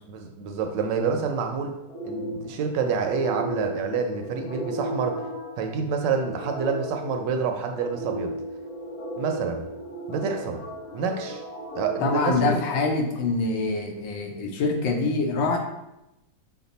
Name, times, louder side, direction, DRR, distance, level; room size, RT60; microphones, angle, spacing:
voice 1, 0.1-1.7 2.0-5.2 5.6-8.3 9.2-9.6 10.1-10.6 10.9-11.4 11.7-12.6, right 5 dB, 75° right, 4 dB, 1.1 m, -28 dB
sound 1, 1.9-13.2, equal, 55° left, 1.3 m, -35 dB
voice 2, 12.0-15.6, left 3 dB, 85° left, 2 dB, 1.5 m, -25 dB
5.8 x 2.2 x 4.0 m, 0.90 s
omnidirectional pair, 2.1 m